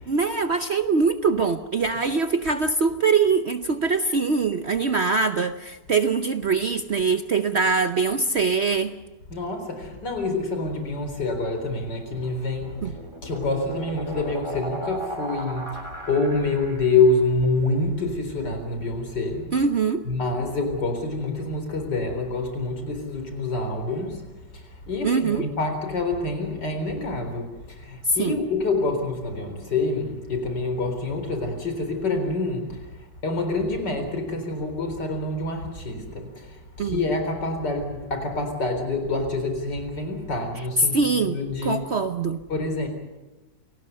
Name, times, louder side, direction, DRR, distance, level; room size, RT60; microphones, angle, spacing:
voice 1, 0.1-8.9 12.8-12.9 19.5-20.0 25.0-25.5 28.1-28.4 36.8-37.0 40.8-42.4, right 4 dB, 50° right, 8 dB, 0.9 m, -23 dB
voice 2, 9.3-13.0 13.2-15.7 16.1-19.5 20.0-24.2 24.5-32.8 33.2-41.9 42.5-42.9, left 3 dB, 70° left, 6 dB, 4.7 m, -26 dB
sound 1, 12.3-17.1, right 1 dB, 15° right, 3.6 m, -36 dB
28.0 x 18.5 x 6.8 m, 1.1 s
omnidirectional pair, 1.9 m